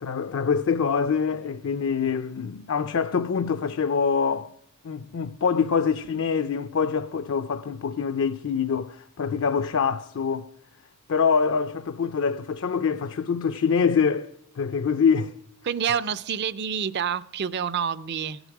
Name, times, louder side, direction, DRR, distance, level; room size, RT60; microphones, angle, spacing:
voice 1, 0.0-4.5 4.8-10.5 11.1-15.3, left 6 dB, 60° left, 0.4 m, -25 dB
voice 2, 15.6-18.4, right 7 dB, 50° right, 0.4 m, -28 dB
17.0 x 8.0 x 6.0 m
head